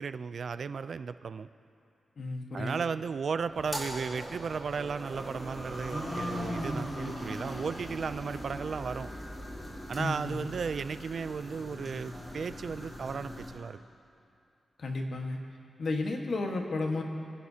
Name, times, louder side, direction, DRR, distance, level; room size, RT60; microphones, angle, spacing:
voice 1, 0.0-1.5 2.5-9.1 9.9-13.8, right 5 dB, 55° right, 13 dB, 0.3 m, -35 dB
voice 2, 2.2-2.8 9.9-10.5 14.8-15.4 15.8-17.0, left 2 dB, 55° left, 2 dB, 1.4 m, -33 dB
sound 1, 2.7-7.2, right 2 dB, 30° right, 1.4 m, -46 dB
sound 2, 3.6-13.5, equal, 20° left, 3.2 m, -39 dB
26.0 x 11.0 x 2.8 m, 2.6 s
wide cardioid pair, 140°, 0 cm